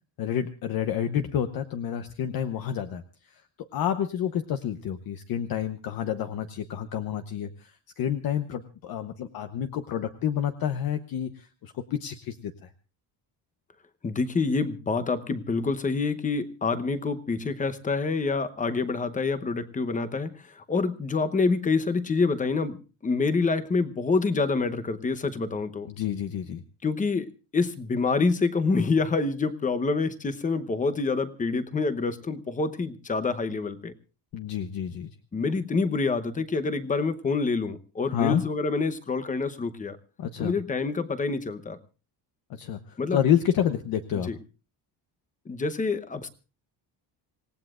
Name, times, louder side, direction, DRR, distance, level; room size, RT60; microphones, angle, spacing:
voice 1, 0.2-3.4 3.7-12.7 25.9-26.6 34.3-35.1 38.1-38.4 40.2-40.5 42.5-44.3, left 9 dB, 55° left, 8 dB, 1.0 m, -29 dB
voice 2, 14.0-25.9 26.8-33.9 35.3-40.0 40.4-41.8 43.0-43.2 44.3-44.4 45.5-46.3, left 4 dB, 20° left, 11 dB, 0.9 m, -27 dB
27.0 x 18.0 x 2.4 m, 0.32 s
cardioid pair, 180°, 43 cm